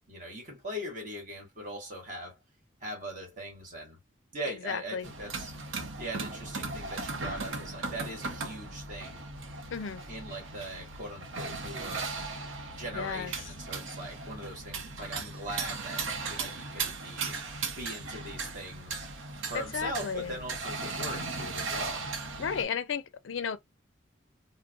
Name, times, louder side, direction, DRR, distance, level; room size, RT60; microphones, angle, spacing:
voice 1, 0.1-2.4 2.8-4.0 4.3-5.5 6.0-9.2 10.1-12.1 12.8-17.4 17.8-19.1 19.5-22.1, right 1 dB, 40° right, 1.8 m, -40 dB
voice 2, 4.7-5.1 9.7-10.0 12.9-13.3 19.5-20.4 22.4-23.6, left 7 dB, 75° left, 0.4 m, -33 dB
sound 1, 5.0-22.6, right 4 dB, 90° right, 0.7 m, -37 dB
3.7 x 2.1 x 2.3 m
head